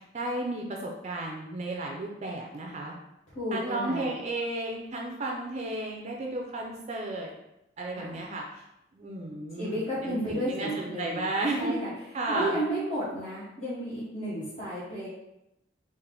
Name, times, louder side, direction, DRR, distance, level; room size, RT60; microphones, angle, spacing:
voice 1, 0.0-3.0 3.5-7.3 7.8-8.6 8.9-11.8 12.1-12.6, right 2 dB, 40° right, 0 dB, 0.4 m, -33 dB
voice 2, 3.3-4.1 7.9-8.2 9.6-11.3 11.6-11.9 12.3-15.1, right 1 dB, 40° left, -11 dB, 1.0 m, -32 dB
3.4 x 2.5 x 3.7 m, 0.87 s
head